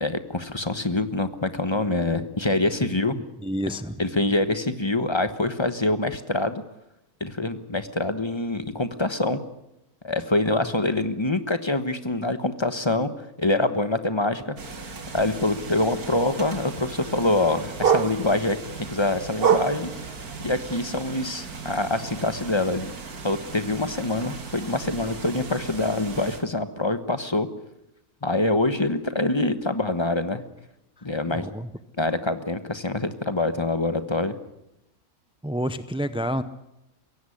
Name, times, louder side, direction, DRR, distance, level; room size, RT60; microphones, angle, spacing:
voice 1, 0.0-3.2 4.0-6.6 7.2-9.4 10.0-13.1 13.4-14.5 15.1-18.6 18.9-19.9 20.4-22.9 23.2-27.5 28.2-30.4 31.0-31.5 32.0-34.4, left 2 dB, 20° left, 10 dB, 1.2 m, -25 dB
voice 2, 3.2-4.0 31.3-31.7 35.4-36.4, equal, 10° right, 12 dB, 0.3 m, -29 dB
sound 1, 14.6-26.4, right 4 dB, 90° right, 2.7 m, -38 dB
sound 2, 16.3-26.5, right 7 dB, 45° right, 1.2 m, -31 dB
23.5 x 16.5 x 9.8 m, 0.87 s
omnidirectional pair, 1.5 m